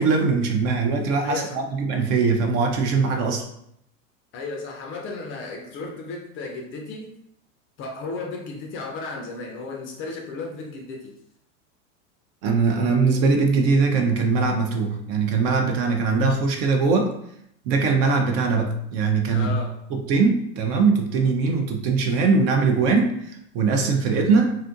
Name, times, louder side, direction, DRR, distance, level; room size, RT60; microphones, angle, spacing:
voice 1, 0.0-3.4 12.4-17.1 17.7-19.6 19.9-24.5, right 4 dB, 40° right, 3 dB, 0.4 m, -21 dB
voice 2, 1.2-1.6 4.3-7.1 7.8-11.1 19.3-19.7, left 3 dB, 30° left, 2 dB, 0.4 m, -34 dB
2.6 x 2.4 x 2.5 m, 0.74 s
hypercardioid pair, 110°, 41 cm